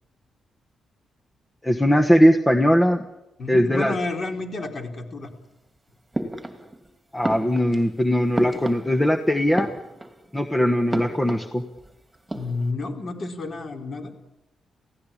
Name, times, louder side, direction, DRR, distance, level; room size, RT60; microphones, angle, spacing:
voice 1, 1.6-3.0 3.5-3.9 7.1-9.7 10.3-11.6, equal, 10° left, 5 dB, 1.2 m, -20 dB
voice 2, 3.4-5.3 12.3-14.1, left 3 dB, 35° left, 3 dB, 4.4 m, -30 dB
sound 1, 6.1-6.9 7.2-9.2 9.5-10.3 10.9-11.9 12.1-12.7, right 1 dB, 10° right, 2.7 m, -32 dB
29.0 x 17.0 x 8.7 m, 0.95 s
wide cardioid pair, 150°, 0 cm